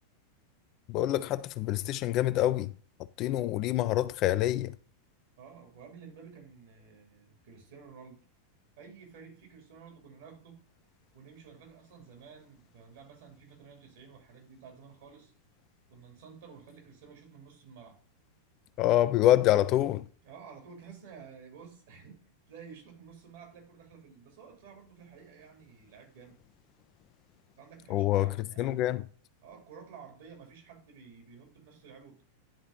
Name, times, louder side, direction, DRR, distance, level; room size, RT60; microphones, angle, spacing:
voice 1, 0.9-2.7 3.2-4.8 18.8-20.1 27.9-29.0, left 13 dB, 40° left, 0.4 m, -26 dB
voice 2, 5.4-8.2 8.8-10.6 11.1-15.3 15.9-18.0 20.2-26.4 27.6-28.7 29.4-32.2, right 6 dB, 55° right, 2.6 m, -52 dB
10.5 x 4.0 x 3.6 m
figure-of-eight pair, 90°, 0 cm